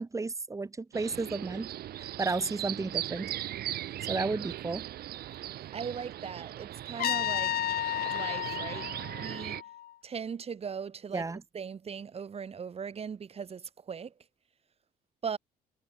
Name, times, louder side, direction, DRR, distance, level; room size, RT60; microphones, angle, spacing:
voice 1, 0.0-1.7 2.0-3.3 4.1-4.9 11.1-11.4, right 3 dB, 20° right, 3.8 m, -33 dB
sound 1, 0.9-9.6, right 13 dB, 65° right, 3.8 m, -39 dB
voice 2, 5.7-7.6 8.0-9.6 10.0-11.3 11.5-14.1 15.2-15.4, right 6 dB, 35° right, 3.9 m, -39 dB
Trumpet, 7.0-9.9, left 12 dB, 65° left, 5.8 m, -32 dB
cardioid pair, 110°, 17 cm